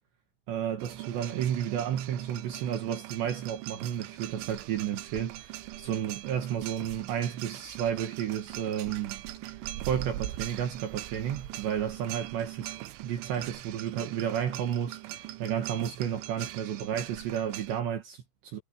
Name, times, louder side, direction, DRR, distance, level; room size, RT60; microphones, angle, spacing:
voice 1, 0.5-9.5 9.9-12.7 13.0-18.6, right 9 dB, 65° right, 3.8 m, -32 dB
sound 1, 0.8-17.8, right 15 dB, 80° right, 3.4 m, -41 dB
omnidirectional pair, 5.9 m